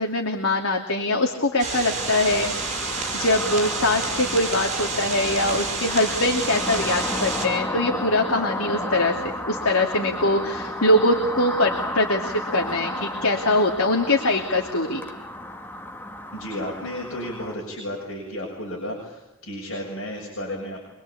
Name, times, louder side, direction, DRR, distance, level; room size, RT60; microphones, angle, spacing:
voice 1, 0.0-2.5 2.8-9.2 9.4-15.0, left 1 dB, 85° left, 2 dB, 2.6 m, -23 dB
sound 1, 1.6-7.5, right 4 dB, 35° right, 6.3 m, -29 dB
sound 2, 1.9-17.5, left 1 dB, 10° left, 1.5 m, -33 dB
voice 2, 16.3-20.8, left 1 dB, 65° left, -2 dB, 7.2 m, -33 dB
26.0 x 22.0 x 8.6 m, 0.93 s
head